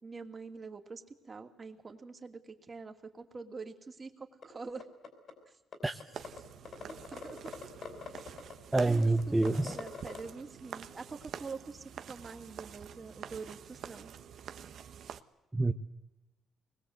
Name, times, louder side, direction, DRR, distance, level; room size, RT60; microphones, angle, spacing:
voice 1, 0.0-4.9 5.5-5.6 6.9-7.5 8.1-8.3 8.8-14.1, right 4 dB, 30° right, 5 dB, 2.7 m, -45 dB
sound 1, 4.4-4.5 4.8-5.3 5.7-5.8 6.0-6.4 6.7-10.2, left 5 dB, 55° left, 4.8 m, -43 dB
sound 2, 6.1-15.2, right 8 dB, 65° right, 1.3 m, -47 dB
voice 2, 8.7-9.7 15.5-15.7, right 2 dB, 10° right, 6 dB, 1.0 m, -27 dB
24.0 x 21.5 x 8.1 m, 1.0 s
cardioid pair, 90°, 0 cm